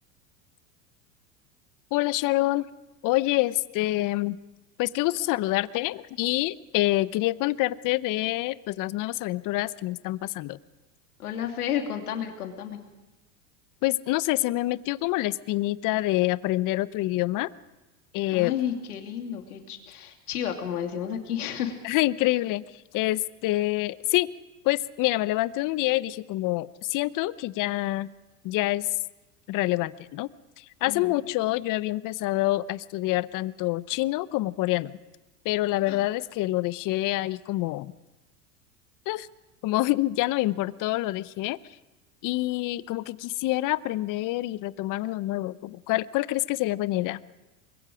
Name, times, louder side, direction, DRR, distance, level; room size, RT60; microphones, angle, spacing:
voice 1, 1.9-2.7 3.0-4.4 4.8-10.6 13.8-17.5 18.1-18.5 21.8-22.6 22.9-24.3 24.6-28.1 28.4-28.9 29.5-30.3 30.6-34.9 35.4-37.9 39.1-39.3 39.6-41.6 42.2-47.2, left 17 dB, 45° left, 17 dB, 0.8 m, -26 dB
voice 2, 11.2-12.8 18.3-21.8 30.9-31.2 35.9-36.0, left 9 dB, 90° left, 4 dB, 2.7 m, -31 dB
23.5 x 21.5 x 5.0 m, 1.1 s
hypercardioid pair, 95°, 43 cm